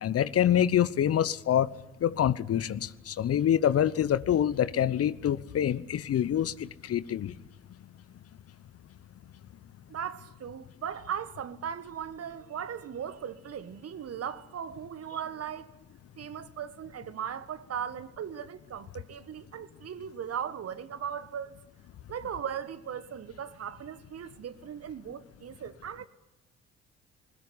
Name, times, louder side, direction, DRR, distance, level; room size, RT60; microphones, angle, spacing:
voice 1, 0.0-1.7 2.0-7.3, left 10 dB, 45° left, 1.0 m, -26 dB
voice 2, 9.9-15.7 16.2-21.6 22.1-26.1, right 8 dB, 45° right, 1.6 m, -38 dB
21.0 x 19.5 x 9.8 m
hypercardioid pair, 50°, 33 cm